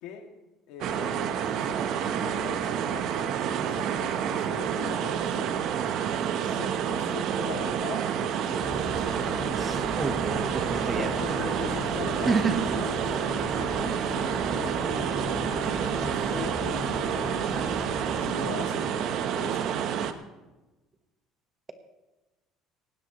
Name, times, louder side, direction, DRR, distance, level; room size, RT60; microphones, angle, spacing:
voice 1, 0.7-5.5 6.4-9.3 11.0-17.3 18.2-19.7, left 6 dB, 75° left, 3 dB, 2.2 m, -41 dB
sound 1, 0.8-20.1, right 8 dB, 55° right, 0.9 m, -29 dB
sound 2, 8.6-18.7, left 3 dB, 25° left, 1.9 m, -37 dB
voice 2, 9.6-11.1 11.4-11.8 12.3-12.7, right 4 dB, 20° right, 7 dB, 1.3 m, -29 dB
18.5 x 16.5 x 3.1 m, 1.1 s
cardioid pair, 150°, 0 cm